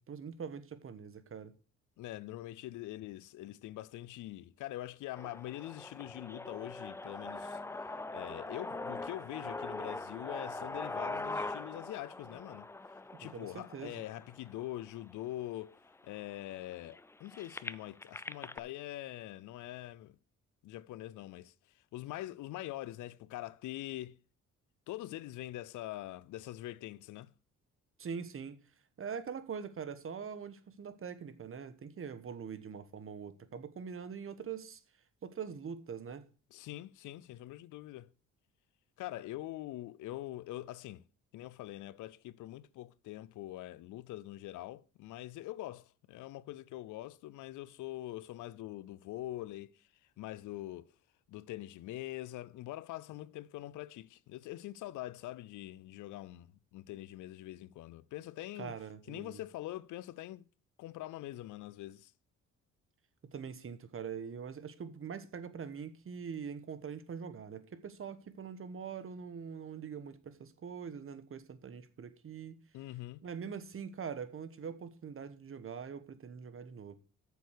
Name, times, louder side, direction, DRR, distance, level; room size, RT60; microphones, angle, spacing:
voice 1, 0.0-1.5 13.3-14.0 28.0-28.6 29.0-34.8 35.2-36.2 58.6-59.4 63.3-72.6 73.2-76.9, right 6 dB, 45° right, 1.3 m, -43 dB
voice 2, 2.0-7.6 8.1-12.7 13.2-15.8 16.0-20.2 20.6-21.5 21.9-24.2 24.9-27.3 36.5-38.1 39.0-41.0 41.3-49.8 50.2-50.9 51.3-56.5 56.7-58.7 59.1-60.4 60.8-62.1 72.7-73.2, left 15 dB, 85° left, 0.6 m, -44 dB
sound 1, 5.2-15.1 15.8-15.9 16.1-18.6, left 2 dB, 10° left, 0.4 m, -42 dB
8.0 x 7.0 x 6.4 m
cardioid pair, 90°, 30 cm